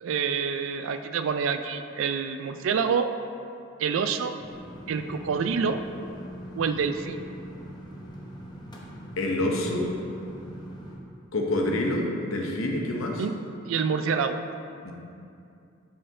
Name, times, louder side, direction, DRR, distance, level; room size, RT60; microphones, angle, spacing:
voice 1, 0.0-3.1 3.8-4.3 4.9-5.8 6.6-7.2 13.2-13.3 13.6-14.4, right 6 dB, 70° right, 9 dB, 0.3 m, -27 dB
sound 1, 4.4-11.0, equal, 20° left, 0.7 m, -42 dB
voice 2, 9.2-9.9 11.3-13.2 14.8-14.9, left 1 dB, 85° left, 0 dB, 0.8 m, -27 dB
6.5 x 4.5 x 3.7 m, 2.5 s
head